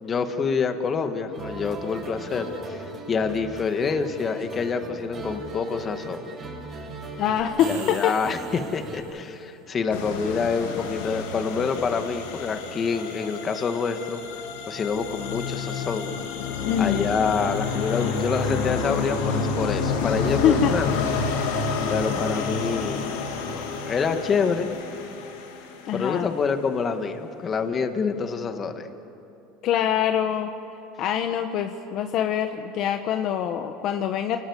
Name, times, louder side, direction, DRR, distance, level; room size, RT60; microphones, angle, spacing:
voice 1, 0.0-6.3 7.7-14.2 14.7-16.1 16.8-20.9 21.9-24.7 25.9-28.9, left 5 dB, 30° left, 7 dB, 1.8 m, -27 dB
sound 1, 1.3-9.0, right 2 dB, 30° right, 6.6 m, -39 dB
voice 2, 7.2-8.2 16.7-17.2 20.4-20.7 25.9-26.3 29.6-30.5 31.0-34.4, left 9 dB, 50° left, 6 dB, 1.1 m, -24 dB
sound 2, 7.4-9.3, right 8 dB, 75° right, 3.6 m, -43 dB
sound 3, 9.9-26.0, left 5 dB, 90° left, 3.2 m, -29 dB
28.5 x 19.5 x 8.3 m, 3.0 s
supercardioid pair, 125°, 0 cm